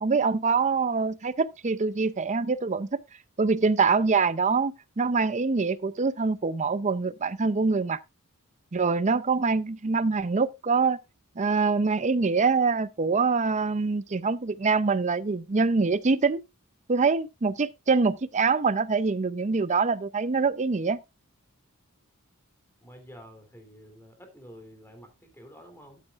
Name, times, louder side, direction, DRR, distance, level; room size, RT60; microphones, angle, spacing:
voice 1, 0.0-3.0 3.4-8.0 8.7-11.0 11.4-16.4 16.9-21.0, right 4 dB, 35° right, 0.6 m, -24 dB
voice 2, 22.8-26.0, equal, 10° left, 3.1 m, -49 dB
12.5 x 8.7 x 2.5 m
head